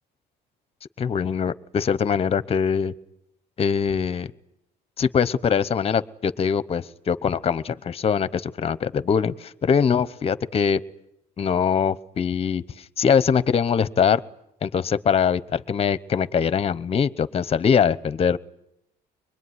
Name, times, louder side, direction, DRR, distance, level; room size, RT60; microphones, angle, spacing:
voice 1, 1.0-2.9 3.6-4.3 5.0-10.8 11.4-12.6 13.0-14.2 14.6-18.4, left 7 dB, 35° left, 16 dB, 0.9 m, -22 dB
24.5 x 21.5 x 9.7 m, 0.82 s
cardioid pair, 110°, 17 cm